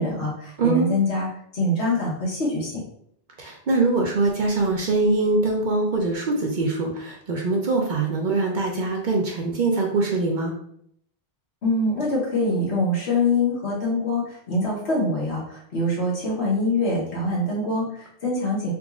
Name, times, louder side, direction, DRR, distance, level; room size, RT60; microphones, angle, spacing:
voice 1, 0.0-2.8 11.6-18.7, left 2 dB, 75° left, -4 dB, 1.4 m, -24 dB
voice 2, 0.6-0.9 3.4-10.5, right 3 dB, 55° right, 0 dB, 0.6 m, -23 dB
3.6 x 3.0 x 2.4 m, 0.69 s
omnidirectional pair, 1.1 m